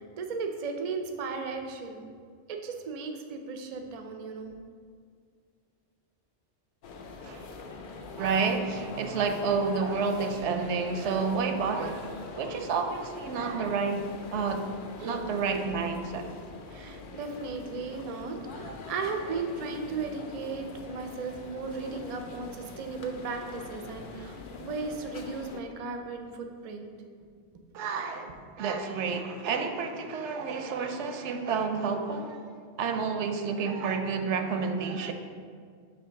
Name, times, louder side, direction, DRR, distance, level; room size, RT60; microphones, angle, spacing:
voice 1, 0.0-2.0 2.5-4.6 16.7-26.9, right 4 dB, 50° right, 4 dB, 0.5 m, -36 dB
sound 1, 6.8-25.6, left 3 dB, 55° left, 0.6 m, -44 dB
voice 2, 8.2-12.1 12.4-14.7 15.0-16.3 27.7-32.5 32.8-35.1, right 5 dB, 80° right, 6 dB, 0.9 m, -30 dB
7.0 x 2.8 x 5.7 m, 2.1 s
omnidirectional pair, 1.2 m